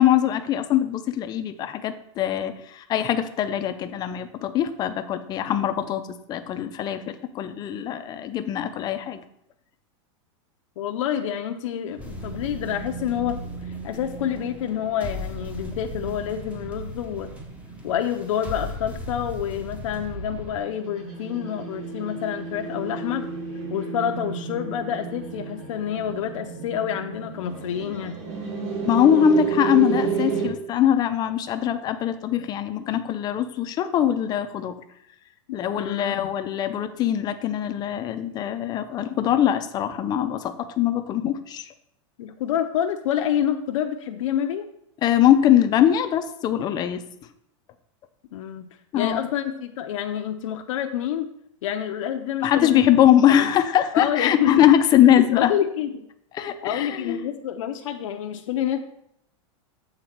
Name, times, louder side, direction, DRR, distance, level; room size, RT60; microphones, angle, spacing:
voice 1, 0.0-6.0 6.3-9.2 28.8-34.8 35.5-41.7 45.0-47.0 48.9-49.3 52.4-55.5 56.3-57.2, left 10 dB, 25° left, 9 dB, 0.5 m, -22 dB
voice 2, 10.8-13.4 13.8-17.3 17.8-23.3 23.7-28.1 35.8-36.3 42.2-44.7 48.3-48.7 49.0-51.3 51.6-52.9 53.3-53.5 53.9-54.5 55.2-56.1 56.6-58.8, left 9 dB, 80° left, 4 dB, 0.7 m, -28 dB
sound 1, 12.0-20.6, equal, 10° right, 0.9 m, -36 dB
sound 2, 20.3-30.5, right 6 dB, 35° right, 2.4 m, -31 dB
7.9 x 4.0 x 5.8 m, 0.74 s
supercardioid pair, 150°, 16 cm